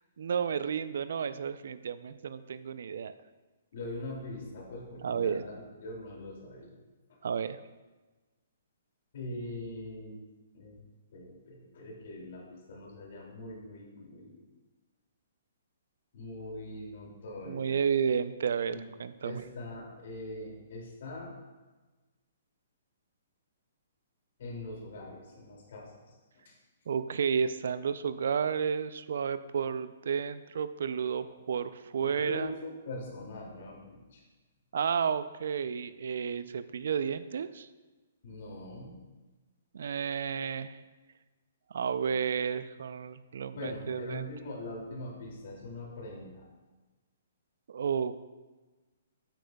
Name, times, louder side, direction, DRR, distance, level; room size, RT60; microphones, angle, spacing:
voice 1, 0.2-3.1 5.0-5.4 7.2-7.6 17.5-19.4 26.9-32.5 34.7-37.7 39.7-40.8 41.7-44.2 47.7-48.2, right 7 dB, 70° right, 13 dB, 0.5 m, -32 dB
voice 2, 3.7-6.7 7.1-7.2 9.1-10.2 10.5-10.8 11.1-14.4 16.1-17.9 18.7-18.8 19.2-21.3 24.4-26.2 26.4-26.5 31.2-31.3 32.0-34.2 38.2-39.0 43.6-46.5, left 2 dB, 60° left, -1 dB, 2.6 m, -42 dB
9.0 x 8.9 x 2.3 m, 1.2 s
hypercardioid pair, 135°, 0 cm